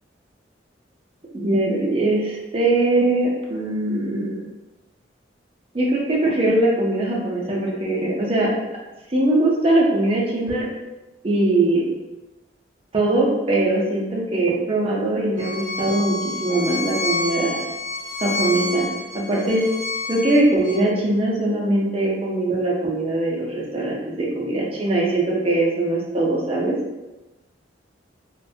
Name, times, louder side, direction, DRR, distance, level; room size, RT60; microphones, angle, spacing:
voice 1, 1.3-4.4 5.7-8.5 9.1-10.7 11.2-11.8 12.9-17.5 18.2-18.9 19.3-19.6 20.1-26.7, right 2 dB, 30° right, -3 dB, 0.5 m, -21 dB
Bowed string instrument, 15.4-20.8, left 2 dB, 45° left, 0.7 m, -29 dB
2.5 x 2.2 x 2.6 m, 1.0 s
head